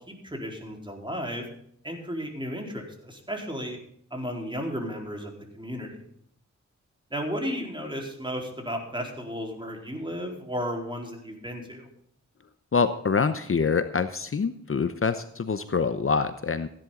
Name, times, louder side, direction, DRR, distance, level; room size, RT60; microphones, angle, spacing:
voice 1, 0.1-1.4 1.8-3.8 4.1-6.0 7.1-11.9, equal, 15° right, 1 dB, 4.2 m, -34 dB
voice 2, 12.7-16.7, left 5 dB, 50° left, 11 dB, 0.8 m, -25 dB
16.0 x 11.0 x 3.8 m, 0.67 s
cardioid pair, 55°, 29 cm